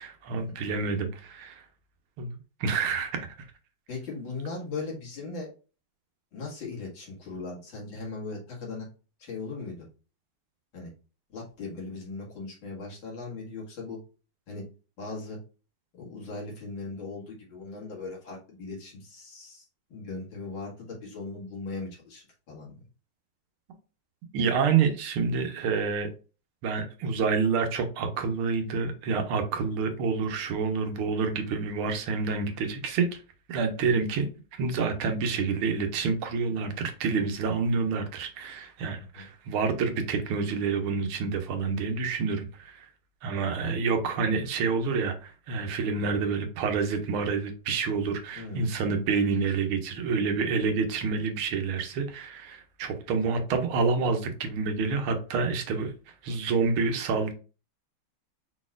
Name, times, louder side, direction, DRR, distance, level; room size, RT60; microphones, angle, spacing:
voice 1, 0.0-1.6 2.2-3.3 24.3-26.1 26.6-33.1 33.5-34.3 34.5-42.9 43.2-55.9 56.2-57.3, right 5 dB, 85° right, 1.7 m, -28 dB
voice 2, 3.9-5.5 6.3-8.9 9.2-9.9 10.7-10.9 11.3-14.0 14.5-14.6 15.0-15.4 15.9-19.6 19.9-22.8 33.8-34.0 39.0-39.3 48.3-48.7, left 3 dB, 65° left, 2.5 m, -38 dB
5.2 x 4.1 x 2.4 m
omnidirectional pair, 2.3 m